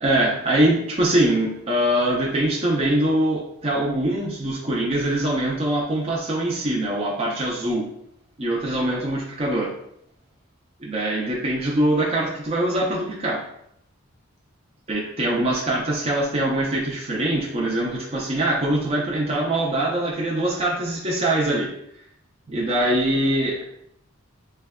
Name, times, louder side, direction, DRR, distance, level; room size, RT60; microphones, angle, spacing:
voice 1, 0.0-7.9 8.4-9.7 10.8-13.4 14.9-21.7 22.5-23.6, right 1 dB, 30° right, -4 dB, 0.5 m, -23 dB
3.2 x 2.2 x 3.5 m, 0.75 s
head